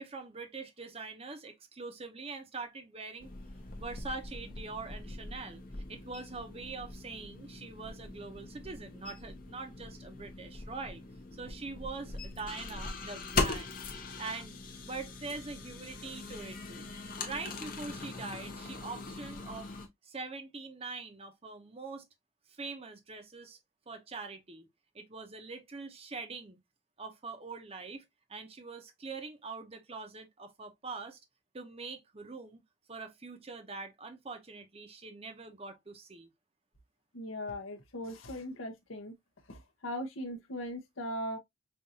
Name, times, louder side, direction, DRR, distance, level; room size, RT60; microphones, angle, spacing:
voice 1, 0.0-3.3 3.8-5.6 5.9-11.0 11.3-13.8 14.2-14.6 14.8-16.9 17.2-19.7 20.0-22.0 22.5-23.6 23.9-24.7 24.9-26.6 27.0-28.0 28.3-31.2 31.5-32.6 32.9-36.3, right 4 dB, 30° right, 0.7 m, -43 dB
sound 1, 3.2-19.9, left 3 dB, 45° left, 0.9 m, -41 dB
voice 2, 37.1-39.1 39.5-41.4, equal, 80° left, 0.9 m, -39 dB
5.5 x 2.6 x 2.7 m
head